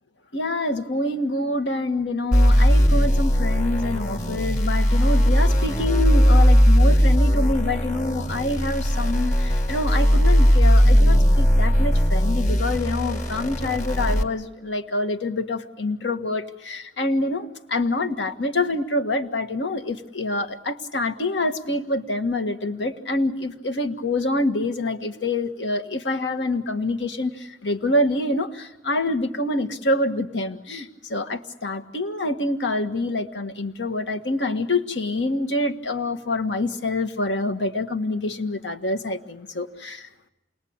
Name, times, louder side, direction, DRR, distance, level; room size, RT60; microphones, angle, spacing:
voice 1, 0.3-40.1, left 2 dB, 85° left, 7 dB, 1.7 m, -26 dB
sound 1, 2.3-14.2, equal, 45° left, 1.9 m, -18 dB
28.5 x 21.0 x 8.8 m, 0.92 s
head